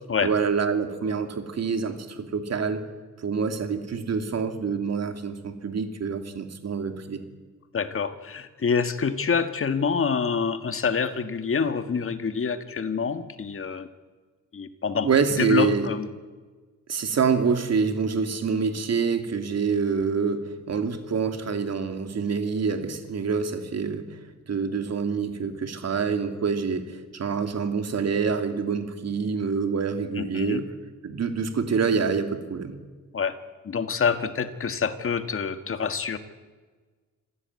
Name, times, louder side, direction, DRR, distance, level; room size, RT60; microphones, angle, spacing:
voice 1, 0.2-2.8 3.2-7.2 15.0-15.9 16.9-24.1 24.5-30.6 31.0-32.8, right 5 dB, 55° right, 7 dB, 2.8 m, -26 dB
voice 2, 7.7-13.9 14.5-15.1 15.3-16.1 30.2-30.6 33.1-33.4 33.6-36.2, left 6 dB, 45° left, 10 dB, 1.7 m, -26 dB
26.5 x 16.0 x 9.6 m, 1.4 s
wide cardioid pair, 140°, 31 cm